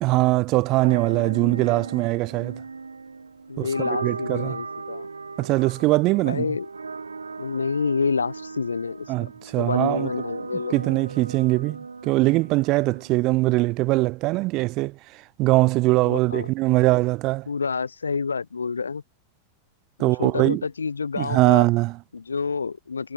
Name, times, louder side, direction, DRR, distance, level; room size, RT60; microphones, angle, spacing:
voice 1, 0.0-2.6 3.6-4.6 5.4-6.5 9.1-10.1 10.7-17.5 20.0-20.6 21.2-22.0, right 21 dB, 40° right, 0.9 m, -22 dB
sound 1, 0.6-13.5, right 4 dB, 75° right, 0.9 m, -37 dB
voice 2, 3.5-5.1 6.2-6.7 7.4-9.3 9.6-10.8 16.1-16.5 17.5-19.0 20.0-21.7 22.1-23.1, left 5 dB, 75° left, 0.4 m, -28 dB
figure-of-eight pair, 90°, 0 cm